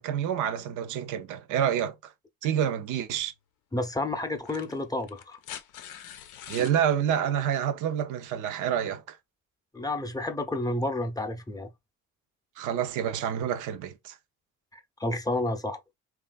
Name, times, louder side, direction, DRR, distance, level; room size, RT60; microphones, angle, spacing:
voice 1, 0.0-2.1 2.4-3.3 6.5-9.2 12.6-14.2, right 9 dB, 85° right, 0.5 m, -28 dB
sound 1, 3.2-3.3 4.3-6.8 8.3-8.4, left 10 dB, 85° left, 0.5 m, -44 dB
voice 2, 3.7-5.4 9.7-11.7 14.7-15.8, left 2 dB, 10° left, 0.5 m, -30 dB
3.1 x 2.4 x 2.2 m
cardioid pair, 90°, 30 cm